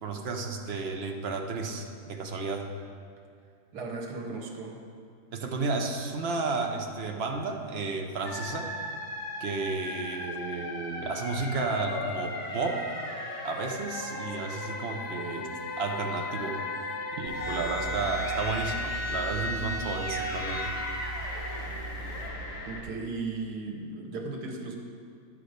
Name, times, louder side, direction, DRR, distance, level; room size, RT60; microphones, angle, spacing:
voice 1, 0.0-2.7 5.3-8.7 9.4-12.9 13.4-15.5 15.8-16.6 17.2-20.7, right 4 dB, 50° right, 3 dB, 0.9 m, -32 dB
voice 2, 3.7-4.8 22.6-24.8, right 3 dB, 85° right, 1 dB, 1.7 m, -36 dB
sound 1, 8.3-22.8, left 2 dB, 60° left, 1.5 m, -37 dB
sound 2, 11.9-17.7, left 4 dB, 85° left, 1.4 m, -42 dB
sound 3, 17.3-22.3, right 1 dB, 20° right, 1.1 m, -35 dB
10.5 x 4.8 x 6.5 m, 2.2 s
omnidirectional pair, 1.6 m